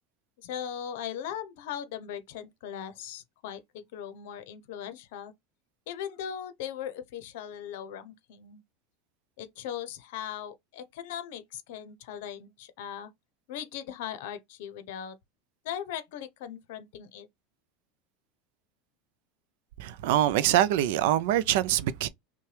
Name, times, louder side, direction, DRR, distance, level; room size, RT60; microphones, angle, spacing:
voice 1, 0.4-5.3 5.9-8.6 9.4-13.1 13.5-15.2 15.6-17.3, left 9 dB, 70° left, 0.7 m, -39 dB
voice 2, 19.8-22.1, right 12 dB, 70° right, 0.4 m, -24 dB
5.7 x 2.2 x 3.2 m
supercardioid pair, 150°, 0 cm